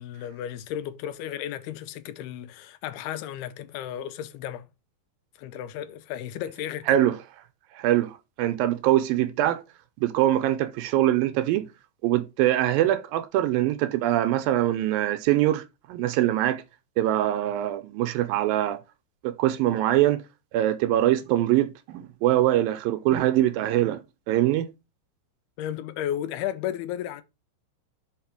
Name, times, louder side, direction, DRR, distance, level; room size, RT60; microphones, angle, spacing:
voice 1, 0.0-4.7 5.4-7.0 25.6-27.2, left 11 dB, 85° left, 2.8 m, -34 dB
voice 2, 6.9-7.2 7.7-9.6 10.0-11.7 12.0-16.6 17.0-18.8 19.2-20.2 20.5-24.0 24.3-24.7, right 13 dB, 80° right, 2.2 m, -23 dB
5.6 x 5.5 x 5.9 m
omnidirectional pair, 4.4 m